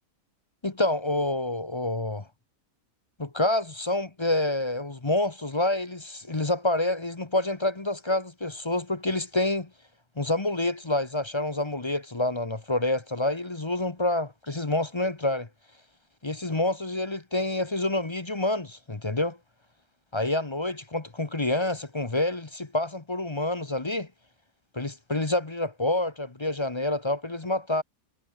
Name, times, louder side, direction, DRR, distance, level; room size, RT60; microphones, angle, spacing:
voice 1, 0.6-2.3 3.2-9.7 10.2-15.5 16.2-19.4 20.1-24.1 24.7-27.8, left 1 dB, 20° left, 1.0 m, -27 dB
omnidirectional pair, 1.6 m